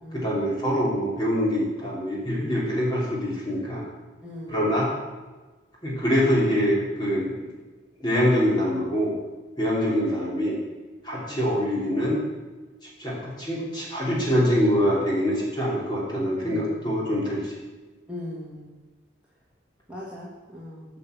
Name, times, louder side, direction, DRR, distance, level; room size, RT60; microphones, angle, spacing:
voice 1, 0.1-3.8 4.5-4.9 5.8-7.5 8.0-9.1 9.6-10.6 11.0-12.2 13.0-17.5, equal, 25° left, -6 dB, 3.0 m, -24 dB
voice 2, 4.2-4.8 11.2-11.4 16.4-16.8 18.1-18.7 19.9-20.9, left 1 dB, 5° right, -7 dB, 1.5 m, -39 dB
8.6 x 6.0 x 8.1 m, 1.2 s
head